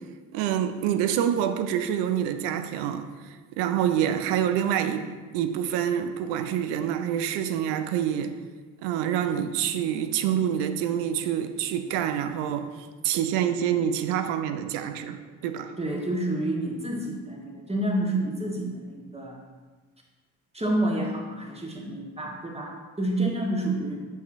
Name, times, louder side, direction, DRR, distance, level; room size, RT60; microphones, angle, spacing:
voice 1, 0.3-5.1 5.3-8.3 8.8-12.7 13.0-15.7, right 9 dB, 70° right, 0.5 m, -27 dB
voice 2, 15.8-19.4 20.5-24.1, right 1 dB, 15° right, 1.3 m, -29 dB
6.6 x 5.5 x 2.6 m
hypercardioid pair, 50°, 44 cm